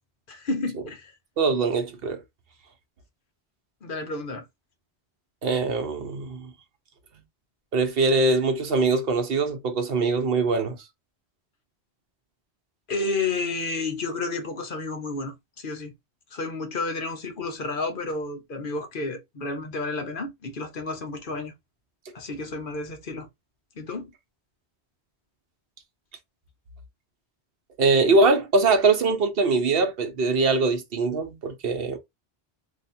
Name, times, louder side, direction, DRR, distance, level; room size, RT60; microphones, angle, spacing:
voice 1, 0.3-1.1 3.8-4.4 12.9-15.9 16.3-21.5 22.1-23.3 23.8-24.1, left 3 dB, 55° left, 1.0 m, -31 dB
voice 2, 1.4-2.2 5.4-6.5 7.7-10.8 27.8-32.0, right 3 dB, 65° right, 1.1 m, -22 dB
2.9 x 2.5 x 4.2 m
omnidirectional pair, 1.1 m